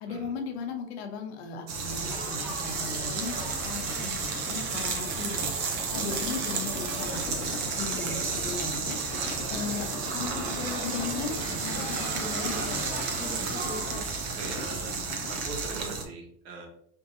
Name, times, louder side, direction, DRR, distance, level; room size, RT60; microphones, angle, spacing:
voice 1, 0.0-5.5 5.9-9.0 9.5-12.9, left 5 dB, 70° left, 3 dB, 0.9 m, -37 dB
sound 1, 1.7-16.0, right 5 dB, 30° right, 0.4 m, -32 dB
Laughter / Chatter / Crowd, 1.8-14.0, equal, ahead, 1.1 m, -40 dB
Idling, 5.9-15.5, left 3 dB, 40° left, 0.6 m, -42 dB
voice 2, 6.0-6.3 13.3-13.6 14.4-14.9 15.3-16.7, right 3 dB, 60° right, 1 dB, 1.2 m, -41 dB
4.5 x 2.7 x 2.6 m, 0.66 s
supercardioid pair, 165°, 33 cm